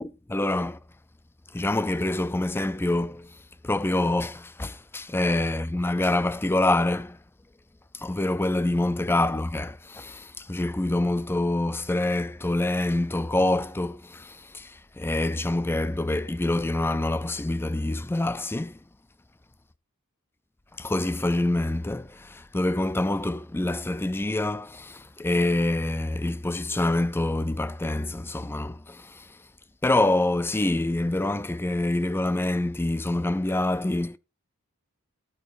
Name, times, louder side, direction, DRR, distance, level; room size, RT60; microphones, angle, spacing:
voice 1, 0.0-0.8 1.5-3.4 3.6-7.2 7.9-18.8 20.8-29.3 29.8-34.2, left 2 dB, 10° left, 0.4 m, -26 dB
12.5 x 9.1 x 2.6 m
head